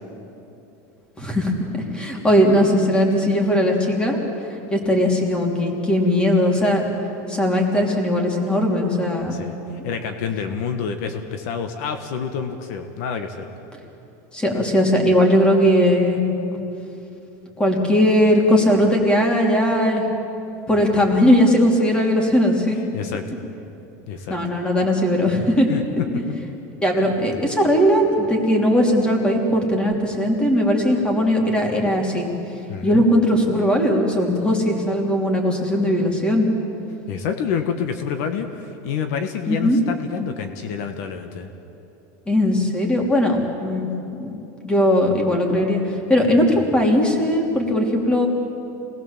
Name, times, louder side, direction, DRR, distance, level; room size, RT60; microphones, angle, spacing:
voice 1, 1.2-1.5 1.9-4.2 4.7-6.8 7.3-9.4 14.3-16.2 17.6-20.0 20.7-22.8 24.3-25.7 26.8-32.2 32.8-36.5 39.5-39.8 42.3-43.9 44.2-44.3 44.6-45.8 46.1-48.3, equal, 10° left, 1 dB, 3.1 m, -19 dB
voice 2, 9.8-13.5 22.9-23.4 24.1-24.4 25.7-25.8 32.7-33.0 37.1-41.5, left 6 dB, 65° left, 7 dB, 1.6 m, -28 dB
27.0 x 19.5 x 7.4 m, 2.9 s
supercardioid pair, 150°, 9 cm